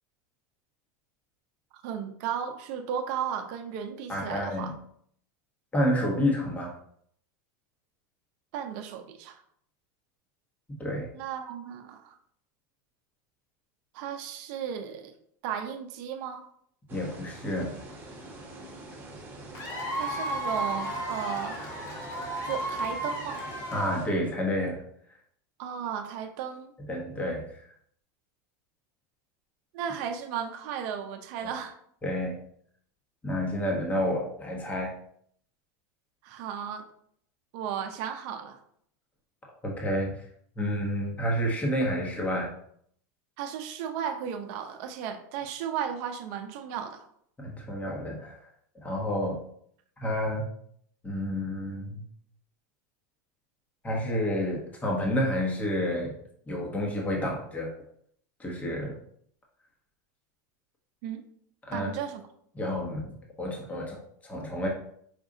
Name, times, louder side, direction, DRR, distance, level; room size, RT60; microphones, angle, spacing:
voice 1, 1.8-4.7 8.5-9.4 11.1-12.2 13.9-15.1 15.4-16.4 20.0-21.6 22.4-23.4 25.6-26.7 29.7-31.7 36.2-36.9 37.5-38.6 43.4-47.1 61.0-61.2 61.7-62.2, right 8 dB, 60° right, 6 dB, 0.6 m, -35 dB
voice 2, 4.1-4.7 5.7-6.7 10.8-11.1 16.9-17.7 23.7-24.8 26.9-27.7 32.0-32.4 33.2-34.9 39.6-40.2 40.6-42.5 47.4-48.4 48.8-49.4 50.0-50.4 51.0-52.0 53.8-56.1 56.5-57.7 58.4-58.9 61.7-61.9 62.5-63.1 63.4-64.7, equal, 15° left, -1 dB, 1.0 m, -29 dB
sound 1, 16.9-24.1, right 2 dB, 20° right, 1.1 m, -45 dB
Cheering / Applause / Crowd, 19.5-24.3, right 1 dB, 40° left, 1.6 m, -34 dB
5.2 x 2.4 x 3.8 m, 0.65 s
supercardioid pair, 125°, 10 cm